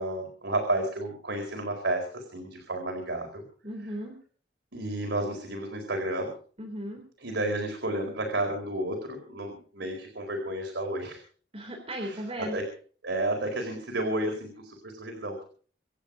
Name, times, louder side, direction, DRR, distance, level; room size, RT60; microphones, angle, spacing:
voice 1, 0.0-3.4 4.7-6.3 7.2-11.2 12.0-12.7 13.0-15.4, right 1 dB, 85° right, 2 dB, 4.4 m, -31 dB
voice 2, 3.6-4.1 6.6-7.0 11.5-12.6, equal, 35° right, 1 dB, 3.8 m, -36 dB
26.5 x 9.1 x 5.1 m, 0.43 s
head